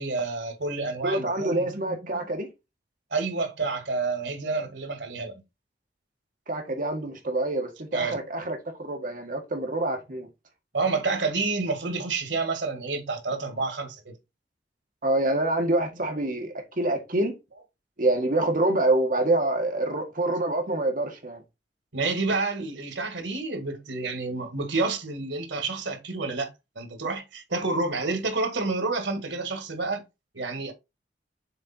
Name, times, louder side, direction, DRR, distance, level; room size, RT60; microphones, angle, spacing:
voice 1, 0.0-2.3 3.1-5.4 7.9-8.2 10.7-14.1 21.9-30.0 30.3-30.7, right 3 dB, 90° right, 1.8 m, -29 dB
voice 2, 1.0-2.5 6.5-10.3 15.0-17.3 18.0-21.4, right 2 dB, 50° right, 1.6 m, -26 dB
6.6 x 4.2 x 4.2 m
head